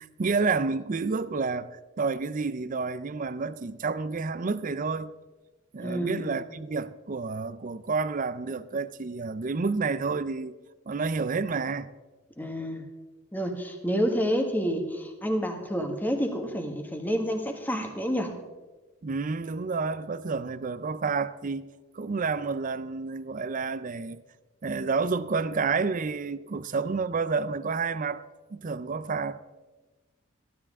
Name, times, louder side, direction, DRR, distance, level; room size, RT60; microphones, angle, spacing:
voice 1, 0.0-1.7 2.0-5.1 5.7-10.6 10.9-11.9 19.0-21.7 21.9-24.2 24.6-28.2 28.5-29.4, right 4 dB, 40° right, 0.5 m, -29 dB
voice 2, 5.8-6.3 12.4-12.8 13.3-18.3, equal, 10° left, 1.3 m, -29 dB
15.0 x 12.0 x 3.6 m
head